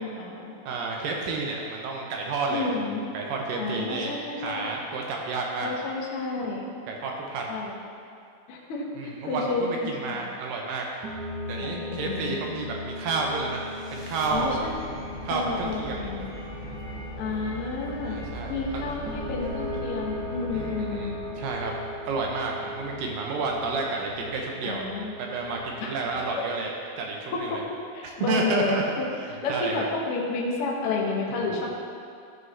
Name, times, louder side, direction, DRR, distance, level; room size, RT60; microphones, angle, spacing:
voice 1, 0.0-0.5 2.5-3.0 3.6-4.6 5.6-6.6 7.5-7.7 8.5-8.8 9.2-10.3 11.6-12.3 14.3-14.7 15.3-16.2 17.2-18.2 18.5-21.2 24.6-25.1 25.8-25.9 27.3-27.6 27.9-29.0 29.4-31.7, left 3 dB, 75° left, -3 dB, 1.3 m, -30 dB
voice 2, 0.7-5.7 6.9-7.6 9.0-10.8 11.5-13.6 13.9-14.6 15.2-16.1 18.1-18.8 20.5-21.7 22.1-24.8 25.2-26.7 27.0-27.6 28.0-28.8 29.2-29.9 31.4-31.7, right 3 dB, 80° right, 0 dB, 2.3 m, -31 dB
sound 1, 11.0-26.2, left 1 dB, 60° right, 2.3 m, -38 dB
sound 2, 13.2-22.4, equal, 30° left, 1.4 m, -40 dB
13.5 x 5.0 x 3.2 m, 2.5 s
omnidirectional pair, 4.2 m